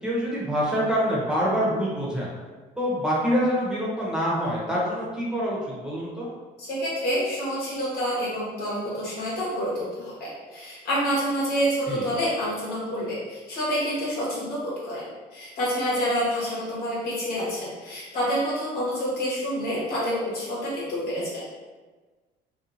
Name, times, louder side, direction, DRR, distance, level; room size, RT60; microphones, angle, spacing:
voice 1, 0.0-2.3 2.8-6.3 11.9-12.1, equal, 5° right, -7 dB, 0.8 m, -26 dB
voice 2, 6.6-21.5, equal, 70° left, -7 dB, 1.2 m, -28 dB
2.6 x 2.3 x 2.6 m, 1.3 s
cardioid pair, 110°, 17 cm